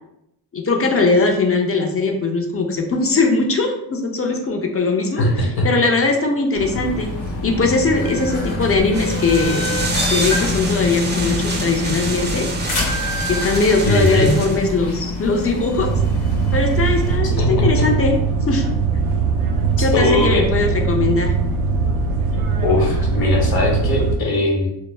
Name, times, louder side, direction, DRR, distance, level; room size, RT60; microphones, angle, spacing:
voice 1, 0.5-5.3 5.6-7.1 7.4-9.6 10.0-12.5 13.3-15.9 16.5-18.1 18.5-18.6 19.8-21.3, left 3 dB, 30° left, 2 dB, 0.5 m, -20 dB
voice 2, 5.2-5.7 13.8-14.3 17.2-17.9 19.9-20.5 22.6-24.7, left 1 dB, 50° left, -1 dB, 1.0 m, -19 dB
sound 1, 6.5-17.1, left 2 dB, 85° left, 1.0 m, -25 dB
sound 2, 8.9-14.6, right 3 dB, 25° right, 0.5 m, -28 dB
sound 3, 15.8-24.2, right 4 dB, 80° right, 0.5 m, -20 dB
2.1 x 2.0 x 3.2 m, 0.82 s
cardioid pair, 65°, 47 cm